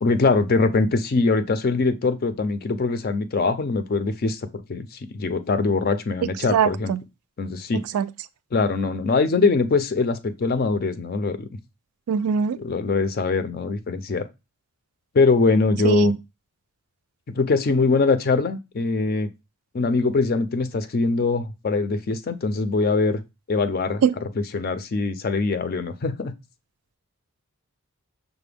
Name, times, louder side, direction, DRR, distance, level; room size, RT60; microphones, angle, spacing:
voice 1, 0.0-6.9 7.4-7.8 8.5-11.5 12.6-14.3 15.1-16.1 17.4-19.3 19.7-23.2 23.5-24.0 24.4-26.3, left 3 dB, 45° left, 0.4 m, -22 dB
voice 2, 6.5-7.0 7.9-8.1 12.1-12.6 15.8-16.2 24.0-24.2, right 7 dB, 90° right, 0.3 m, -21 dB
5.8 x 2.1 x 3.3 m
head